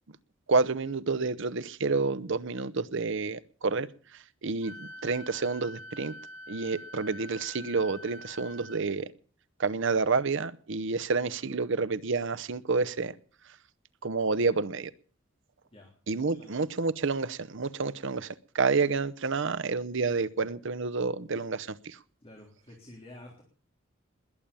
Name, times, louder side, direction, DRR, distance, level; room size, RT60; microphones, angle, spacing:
voice 1, 0.5-6.1 6.5-9.1 9.6-13.1 14.0-14.9 16.1-22.0, right 4 dB, 65° right, 0.8 m, -29 dB
Wind instrument woodwind instrument, 4.6-8.8, left 1 dB, 80° left, 2.1 m, -46 dB
voice 2, 22.2-23.4, left 1 dB, 30° left, 3.6 m, -50 dB
21.0 x 8.8 x 7.0 m
head